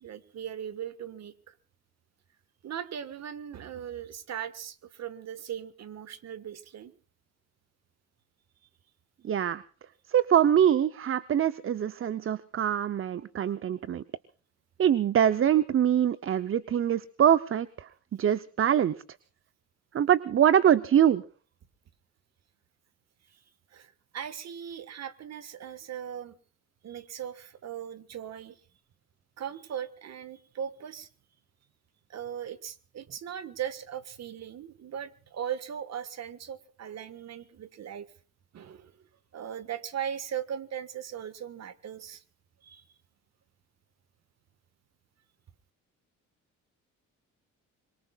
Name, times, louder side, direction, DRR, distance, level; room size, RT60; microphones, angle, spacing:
voice 1, 0.0-1.5 2.6-6.9 13.4-13.6 23.7-26.4 26.8-28.6 29.4-31.1 32.1-38.1 38.5-38.9 39.3-42.2 42.6-42.8, right 9 dB, 60° right, 14 dB, 1.6 m, -39 dB
voice 2, 9.2-9.6 10.1-14.0 14.8-17.7 18.2-18.9 19.9-21.2, right 9 dB, 45° right, 15 dB, 0.7 m, -24 dB
25.0 x 22.5 x 2.4 m, 0.40 s
cardioid pair, 90°, 30 cm